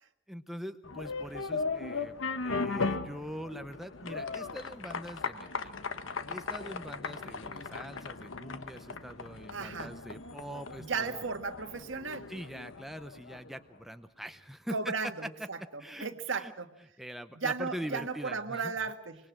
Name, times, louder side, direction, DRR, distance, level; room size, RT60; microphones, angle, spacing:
voice 1, 0.3-5.8 6.3-11.2 12.3-15.5 15.8-16.5 17.0-18.8, equal, ahead, 8 dB, 0.8 m, -43 dB
sound 1, 0.8-13.6, left 4 dB, 85° left, 1.2 m, -38 dB
voice 2, 9.5-9.9 10.8-12.3 14.7-15.6 16.0-16.7 17.4-19.2, right 4 dB, 80° right, 8 dB, 1.6 m, -35 dB
25.5 x 22.0 x 6.0 m, 0.77 s
head